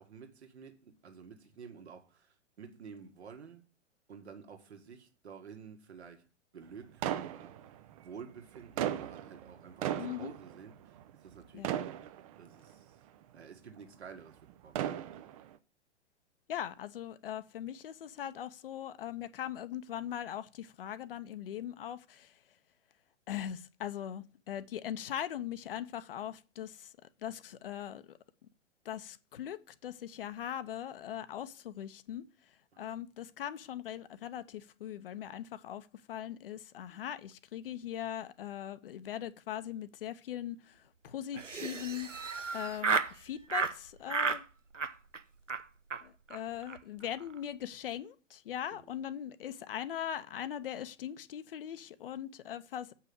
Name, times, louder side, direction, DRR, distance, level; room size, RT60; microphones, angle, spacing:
voice 1, 0.0-2.3 2.6-3.6 4.1-6.3 6.5-7.6 8.0-11.0 11.2-12.1 12.4-12.8 13.3-15.0 32.7-32.8 48.7-48.9, right 6 dB, 60° right, 1.9 m, -51 dB
sound 1, 7.0-8.0 8.5-11.4 11.6-12.7 13.3-13.4 14.5-15.5, right 11 dB, 30° right, 0.6 m, -36 dB
voice 2, 10.0-10.3 11.5-11.8 16.5-22.4 23.3-26.9 27.2-28.2 28.8-42.1 42.5-44.4 46.0-52.9, left 10 dB, 50° left, 0.8 m, -40 dB
Laughter, 41.3-43.1 43.5-43.8 44.1-44.4 44.7-45.2 45.5-45.6 45.9-46.0 46.3-46.4 46.6-46.8 47.0-47.4, right 4 dB, 90° right, 0.7 m, -33 dB
8.0 x 5.6 x 6.8 m
figure-of-eight pair, 110°, 36 cm